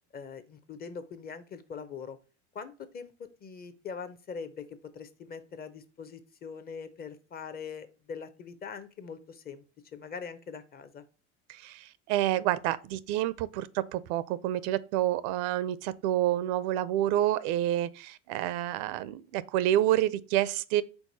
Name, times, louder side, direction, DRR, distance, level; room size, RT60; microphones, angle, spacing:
voice 1, 0.1-2.2 2.5-4.7 4.9-9.6 9.9-11.0, left 6 dB, 25° left, 0.5 m, -42 dB
voice 2, 11.5-20.8, right 13 dB, 75° right, 0.5 m, -28 dB
4.6 x 3.9 x 2.6 m
supercardioid pair, 115°, 36 cm